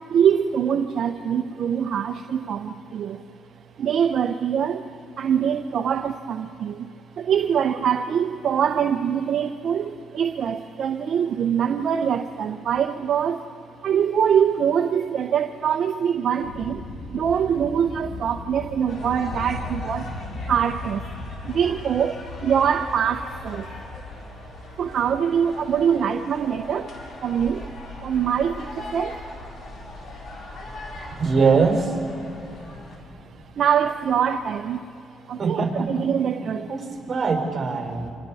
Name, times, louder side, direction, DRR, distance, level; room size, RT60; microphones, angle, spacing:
voice 1, 0.1-3.2 3.8-4.8 5.2-6.7 7.2-13.4 13.8-16.8 17.1-20.0 20.5-21.0 21.5-22.1 22.4-23.6 24.8-26.9 27.2-27.6 28.0-29.1 33.6-34.8 35.3-36.6, right 8 dB, 60° right, 0.7 m, -23 dB
sound 1, 16.4-34.7, left 2 dB, 85° left, 2.6 m, -39 dB
sound 2, 18.9-33.0, left 2 dB, 60° left, 5.0 m, -41 dB
voice 2, 31.2-31.9 35.4-35.9 36.7-38.1, right 5 dB, 40° right, 4.4 m, -22 dB
28.5 x 27.5 x 4.2 m
cardioid pair, 90°, 0 cm